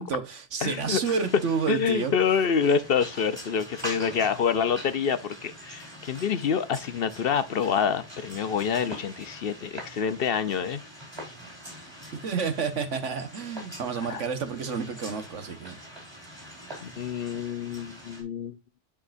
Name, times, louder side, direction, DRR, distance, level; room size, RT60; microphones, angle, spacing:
voice 1, 0.0-2.1 12.2-15.7, right 5 dB, 80° right, 1.5 m, -30 dB
voice 2, 0.6-1.0 1.7-10.8 14.1-14.2 16.8-18.6, left 6 dB, 55° left, 0.8 m, -27 dB
sound 1, 0.7-18.2, equal, 20° right, 3.9 m, -44 dB
11.0 x 4.9 x 2.5 m
omnidirectional pair, 1.2 m